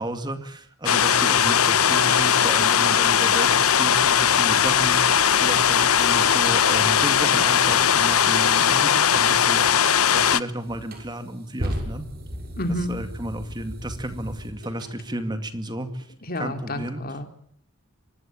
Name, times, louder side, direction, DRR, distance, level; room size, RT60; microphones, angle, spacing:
voice 1, 0.0-12.1 12.9-16.1 16.4-17.0, right 1 dB, 20° right, 8 dB, 2.3 m, -32 dB
sound 1, 0.9-10.4, left 8 dB, 75° left, 1.0 m, -19 dB
sound 2, 9.9-10.0 10.6-14.9, equal, 45° right, 6.5 m, -35 dB
voice 2, 12.6-12.9 16.2-17.3, left 1 dB, 40° left, 7 dB, 3.0 m, -29 dB
25.5 x 21.0 x 9.0 m, 0.64 s
head